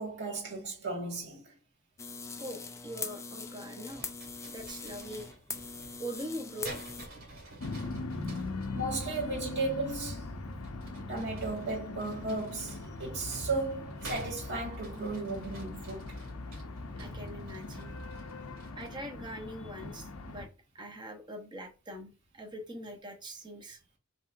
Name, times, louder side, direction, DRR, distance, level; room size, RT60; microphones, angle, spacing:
voice 1, 0.0-1.5 8.7-10.3 11.1-16.2, right 2 dB, 55° right, 1.9 m, -35 dB
sound 1, 2.0-7.1, left 5 dB, 15° left, 0.3 m, -42 dB
voice 2, 2.4-4.1 4.5-5.3 6.0-6.8 17.0-17.9 18.8-20.5 20.7-23.8, equal, 20° right, 0.9 m, -42 dB
sound 2, 3.9-8.7 10.5-19.1, right 2 dB, 75° right, 2.2 m, -49 dB
sound 3, 7.6-20.5, left 2 dB, 85° left, 0.6 m, -41 dB
5.5 x 3.1 x 2.5 m
head